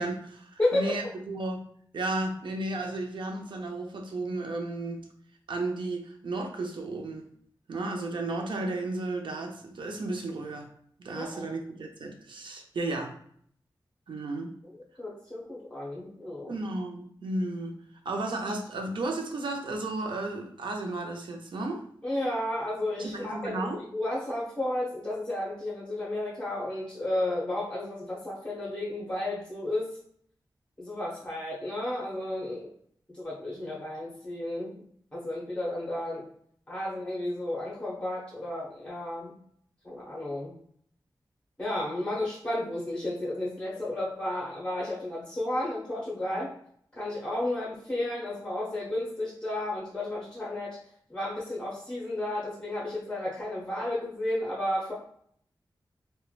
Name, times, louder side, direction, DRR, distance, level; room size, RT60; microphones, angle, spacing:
voice 1, 0.0-1.6 1.9-5.0 5.5-7.3 7.7-10.7 11.0-13.1 14.1-14.5 16.5-17.8 18.0-21.8 22.9-23.8, right 2 dB, 80° right, 2 dB, 0.5 m, -33 dB
voice 2, 0.6-1.1 11.2-11.4 15.0-16.5 22.0-29.9 30.8-32.7 33.2-34.7 35.1-36.2 36.7-39.3 39.8-40.5 41.6-46.5 47.0-50.8 51.1-54.9, left 1 dB, 10° left, -6 dB, 0.8 m, -32 dB
3.1 x 2.1 x 2.4 m, 0.63 s
wide cardioid pair, 100°, 8 cm